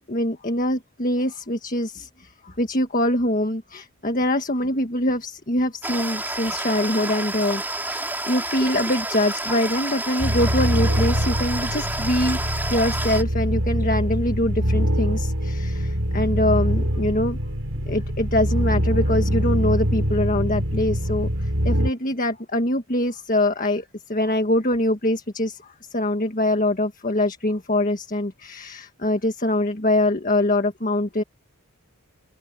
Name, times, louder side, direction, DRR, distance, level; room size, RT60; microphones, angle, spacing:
voice 1, 0.0-17.4 17.8-31.2, left 1 dB, 35° left, 1.7 m, -24 dB
sound 1, 5.8-13.2, right 2 dB, 10° right, 2.9 m, -29 dB
sound 2, 10.2-21.9, equal, 70° right, 7.1 m, -24 dB
head